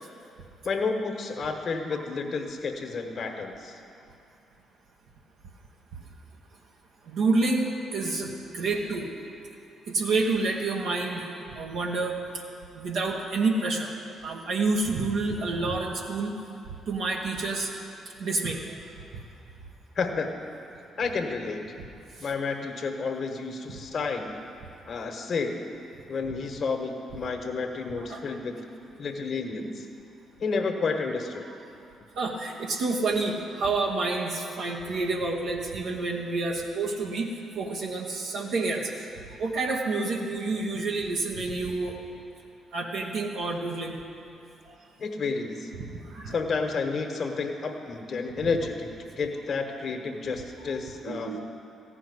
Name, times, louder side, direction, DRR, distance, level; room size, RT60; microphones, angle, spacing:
voice 1, 0.6-3.8 19.9-20.4 21.0-21.7 22.2-24.3 24.9-25.6 26.1-28.6 29.0-29.9 30.4-31.4 45.0-45.7 46.3-48.9 49.2-51.4, left 4 dB, 55° left, 4 dB, 1.4 m, -30 dB
voice 2, 7.0-9.1 9.9-12.2 12.7-13.9 14.2-16.4 16.9-17.7 18.2-18.8 22.2-22.3 28.0-28.4 32.1-39.1 39.4-42.0 42.7-44.0 44.6-44.7 45.8-46.4 51.1-51.4, right 3 dB, 75° right, -2 dB, 1.2 m, -29 dB
14.5 x 5.8 x 9.8 m, 2.6 s
supercardioid pair, 55°, 0 cm